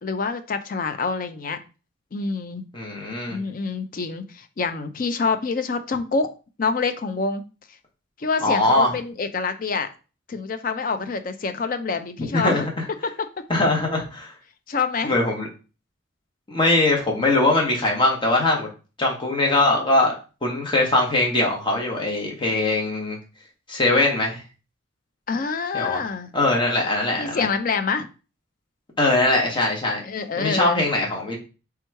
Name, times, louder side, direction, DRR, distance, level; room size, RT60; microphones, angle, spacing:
voice 1, 0.0-1.6 2.1-2.6 3.3-6.3 6.6-7.4 8.2-9.9 10.3-12.7 14.7-15.2 25.3-26.3 27.2-28.1 30.0-30.8, left 4 dB, 45° left, 10 dB, 0.4 m, -26 dB
voice 2, 2.7-3.4 8.4-8.9 12.3-12.8 13.5-14.3 15.0-15.5 16.5-18.7 19.0-20.1 20.4-23.2 23.7-24.4 25.7-26.0 26.3-27.5 29.0-30.0 30.4-31.4, left 2 dB, 25° left, -1 dB, 1.0 m, -21 dB
3.5 x 3.0 x 4.5 m, 0.33 s
head